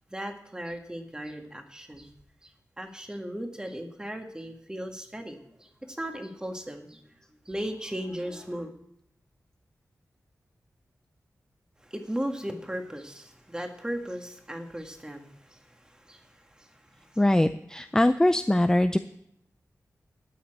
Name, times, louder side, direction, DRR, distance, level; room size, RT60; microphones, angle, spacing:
voice 1, 0.1-2.1 2.4-7.0 7.5-8.7 11.8-17.2, equal, 15° right, 4 dB, 1.7 m, -37 dB
voice 2, 17.2-19.0, left 1 dB, 10° left, 10 dB, 0.4 m, -22 dB
12.5 x 5.8 x 8.7 m, 0.74 s
wide cardioid pair, 85°, 6 cm